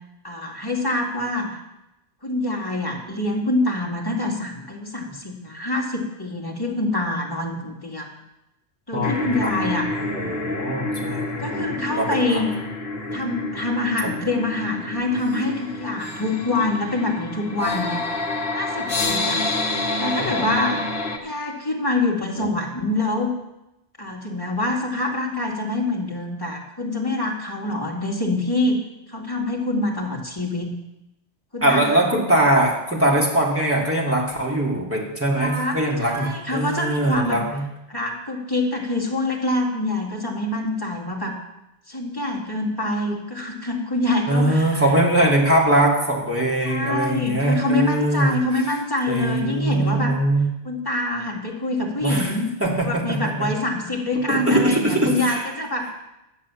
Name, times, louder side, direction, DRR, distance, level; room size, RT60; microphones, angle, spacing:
voice 1, 0.2-1.6 2.2-8.1 8.9-9.9 11.4-12.5 13.1-18.0 18.5-19.4 20.0-20.8 21.2-23.3 24.0-28.8 29.1-30.7 31.5-32.0 35.4-37.4 37.9-41.4 41.9-44.8 46.6-50.2 50.6-52.5 52.8-55.9, left 2 dB, 20° left, -1 dB, 2.2 m, -25 dB
voice 2, 8.9-9.7 10.0-12.4 13.1-13.2 20.2-20.5 22.4-22.5 31.6-37.6 44.3-48.4 49.1-50.5 52.0-52.3 52.6-53.5 54.3-55.4, right 1 dB, 10° right, -4 dB, 2.7 m, -22 dB
sound 1, 9.0-21.2, left 2 dB, 60° left, 1.5 m, -28 dB
11.5 x 7.5 x 7.3 m, 0.90 s
omnidirectional pair, 1.1 m